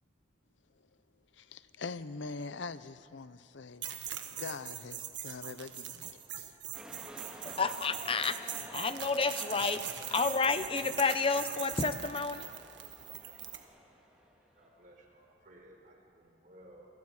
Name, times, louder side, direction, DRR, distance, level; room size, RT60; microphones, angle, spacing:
voice 1, 1.3-6.5, left 4 dB, 80° left, 0.7 m, -43 dB
sound 1, 3.8-13.6, right 10 dB, 75° right, 1.6 m, -42 dB
sound 2, 6.7-14.8, equal, 5° right, 2.3 m, -51 dB
voice 2, 7.4-12.5, left 4 dB, 30° left, 0.8 m, -31 dB
voice 3, 14.6-16.9, right 1 dB, 45° right, 4.4 m, -57 dB
28.0 x 24.0 x 4.9 m
head